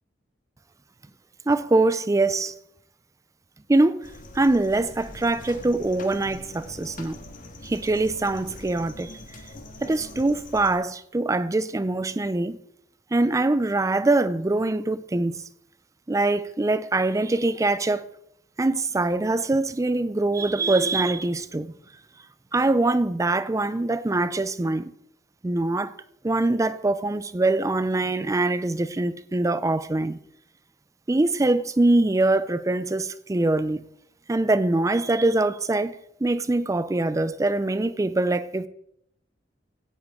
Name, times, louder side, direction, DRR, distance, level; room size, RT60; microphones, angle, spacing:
voice 1, 1.5-2.5 3.7-4.1 4.3-7.2 7.6-9.2 9.8-12.6 13.1-15.4 16.1-18.1 18.6-21.7 22.5-24.9 25.4-25.9 26.2-30.2 31.1-33.8 34.3-38.7, right 2 dB, 20° right, 0.4 m, -23 dB
sound 1, 4.0-10.8, left 1 dB, 45° left, 1.7 m, -43 dB
16.5 x 9.7 x 3.6 m
head